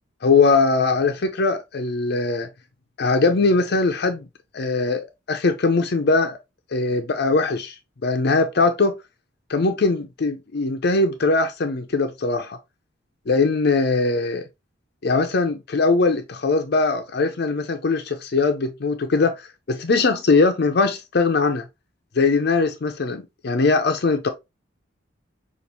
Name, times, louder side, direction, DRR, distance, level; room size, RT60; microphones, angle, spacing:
voice 1, 0.2-2.5 3.0-4.3 4.5-6.4 6.7-7.8 8.0-9.0 9.5-12.6 13.3-14.4 15.0-21.7 22.2-24.3, left 3 dB, 55° left, 0.5 m, -21 dB
5.2 x 2.5 x 2.9 m
head